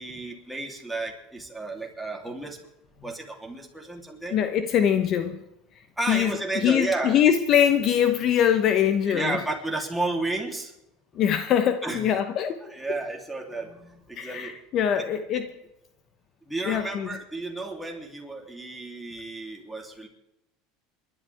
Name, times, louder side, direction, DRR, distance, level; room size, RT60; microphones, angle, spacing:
voice 1, 0.0-2.6 3.0-4.4 6.0-7.2 9.1-10.7 11.8-12.0 12.6-14.6 14.9-15.0 16.5-20.1, right 2 dB, 5° right, 3.3 m, -32 dB
voice 2, 4.3-5.4 6.0-9.5 11.1-12.6 12.9-13.0 14.2-15.6 16.6-17.2, left 9 dB, 45° left, 1.0 m, -23 dB
28.5 x 12.0 x 3.5 m
supercardioid pair, 130°, 0 cm